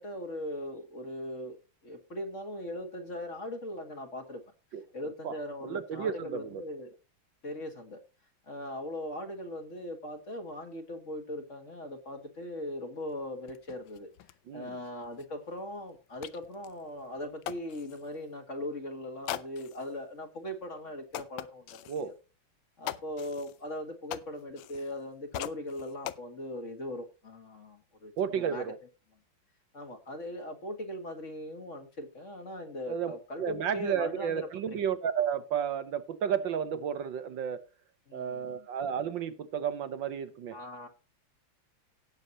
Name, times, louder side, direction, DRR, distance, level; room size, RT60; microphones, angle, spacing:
voice 1, 0.0-1.6 1.8-4.4 4.9-6.9 7.4-8.0 8.5-14.1 14.5-22.1 22.8-28.7 29.7-34.8 38.1-38.7 40.5-40.9, left 1 dB, 40° left, 2.0 m, -40 dB
voice 2, 5.6-6.6 14.5-14.7 21.9-22.1 28.2-28.8 32.9-33.1 33.4-37.6 38.1-40.6, right 8 dB, 70° right, 1.6 m, -32 dB
sound 1, 13.1-13.2 13.4-18.2 19.3-19.9 20.5-20.6 21.1-22.1 22.8-25.0 25.3-26.2, left 12 dB, 75° left, 1.4 m, -42 dB
18.0 x 7.0 x 2.9 m
omnidirectional pair, 2.2 m